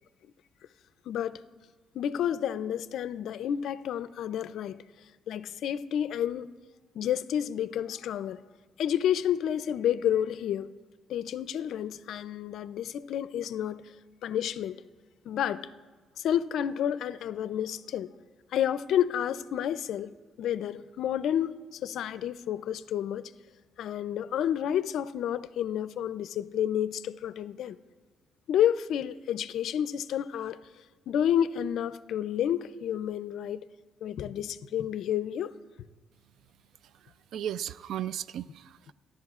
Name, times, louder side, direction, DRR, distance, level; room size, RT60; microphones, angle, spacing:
voice 1, 1.1-1.4 1.9-4.8 5.3-6.5 6.9-8.4 8.8-10.7 11.1-13.8 14.2-14.8 15.3-15.7 16.2-18.1 18.5-23.3 23.8-27.8 28.5-30.6 31.1-33.6 34.0-35.5, left 10 dB, 75° left, 0.4 m, -30 dB
voice 2, 37.0-38.9, right 10 dB, 75° right, 0.3 m, -36 dB
29.5 x 11.0 x 2.4 m
cardioid pair, 90°, 0 cm